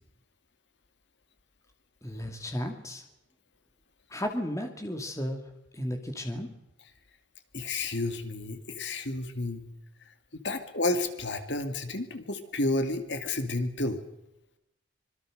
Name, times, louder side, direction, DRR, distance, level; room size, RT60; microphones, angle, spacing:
voice 1, 2.0-3.0 4.1-5.4 5.7-6.5, equal, 15° left, 4 dB, 2.5 m, -34 dB
voice 2, 7.5-9.7 10.3-14.0, left 2 dB, 65° left, 7 dB, 2.4 m, -31 dB
26.0 x 22.5 x 6.6 m, 0.86 s
head